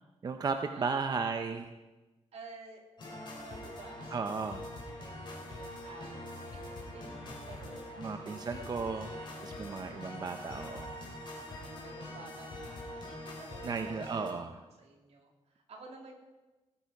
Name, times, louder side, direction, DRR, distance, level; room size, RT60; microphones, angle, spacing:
voice 1, 0.2-1.7 4.1-4.6 8.0-9.1 9.4-11.0 13.6-14.6, right 4 dB, 40° right, 7 dB, 0.6 m, -35 dB
voice 2, 2.3-5.3 5.6-10.2 11.3-14.0 14.5-16.1, right 3 dB, 70° right, 2 dB, 2.3 m, -53 dB
sound 1, 3.0-14.3, left 1 dB, 45° left, 3.5 m, -44 dB
18.5 x 8.9 x 4.8 m, 1.2 s
wide cardioid pair, 170°, 11 cm